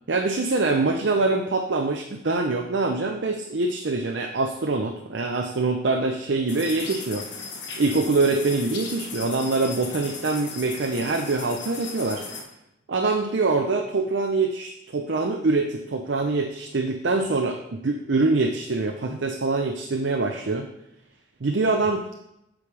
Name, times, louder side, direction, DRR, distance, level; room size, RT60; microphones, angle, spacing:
voice 1, 0.1-7.3 7.8-12.4 12.9-20.7 21.4-22.0, right 3 dB, 70° right, 3 dB, 0.6 m, -24 dB
sound 1, 6.5-12.4, left 4 dB, 65° left, 1.2 m, -37 dB
8.6 x 6.2 x 3.3 m, 0.82 s
head